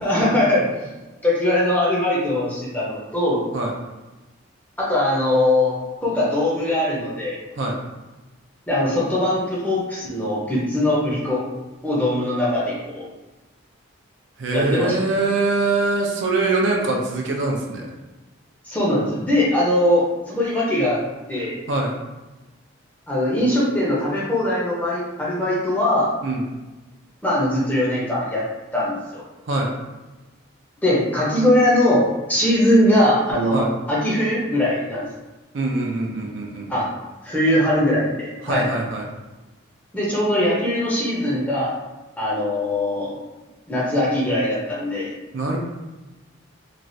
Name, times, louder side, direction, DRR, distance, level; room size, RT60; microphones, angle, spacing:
voice 1, 0.0-0.8 1.2-3.4 4.8-5.8 6.0-7.4 8.7-11.4 11.8-13.1 14.5-15.0 18.6-21.0 21.3-21.6 23.1-26.1 27.2-28.4 28.7-29.2 30.8-35.1 36.7-36.9 37.2-38.7 39.9-41.8 42.2-43.1 43.7-45.1, left 1 dB, 10° left, -6 dB, 0.6 m, -21 dB
voice 2, 14.4-17.9 21.7-22.0 26.2-26.4 29.5-29.7 33.5-33.7 35.5-36.8 38.4-39.0 45.3-45.6, right 2 dB, 65° right, 0 dB, 0.5 m, -23 dB
3.0 x 2.4 x 2.6 m, 1.1 s
head